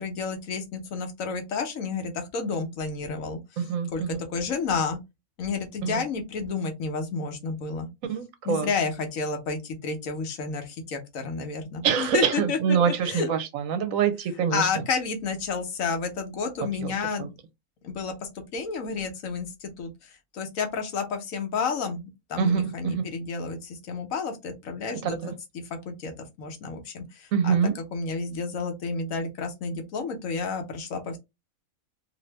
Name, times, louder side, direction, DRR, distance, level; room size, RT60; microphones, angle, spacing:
voice 1, 0.0-3.6 3.9-4.0 4.3-5.0 5.4-7.9 8.4-13.3 14.5-17.3 17.8-25.3 25.8-26.1 26.4-27.6 27.9-31.2, left 4 dB, 70° left, 1.1 m, -31 dB
voice 2, 3.6-4.2 5.8-6.0 8.1-8.7 11.8-14.8 16.6-16.9 17.2-17.3 22.4-23.1 25.2-25.3 27.3-27.7, right 7 dB, 70° right, 0.9 m, -25 dB
2.7 x 2.6 x 3.2 m
omnidirectional pair, 1.5 m